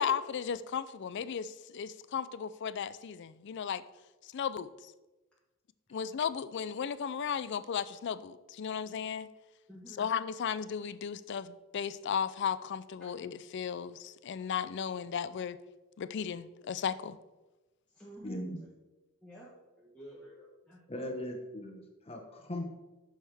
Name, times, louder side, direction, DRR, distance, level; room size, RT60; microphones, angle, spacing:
voice 1, 0.0-3.8 4.2-4.9 5.9-9.3 10.0-15.6 16.0-17.2, left 7 dB, 55° left, 15 dB, 0.4 m, -35 dB
voice 2, 9.7-10.1 17.9-18.7 19.2-19.5 19.8-21.2, right 1 dB, 5° left, -8 dB, 1.3 m, -51 dB
voice 3, 18.2-18.6 20.9-22.7, left 1 dB, 30° left, 2 dB, 1.2 m, -39 dB
10.0 x 6.4 x 3.5 m, 1.1 s
head